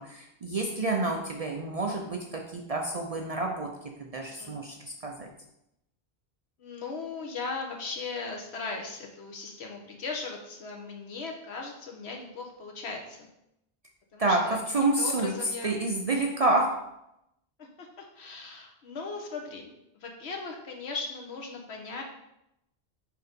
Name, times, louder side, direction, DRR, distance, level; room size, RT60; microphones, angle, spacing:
voice 1, 0.0-5.3 14.2-15.3 15.6-16.8, right 2 dB, 45° right, 1 dB, 0.5 m, -28 dB
voice 2, 6.6-13.3 14.1-15.7 17.6-22.0, left 4 dB, 80° left, 1 dB, 1.3 m, -38 dB
4.6 x 4.0 x 5.1 m, 0.83 s
omnidirectional pair, 1.1 m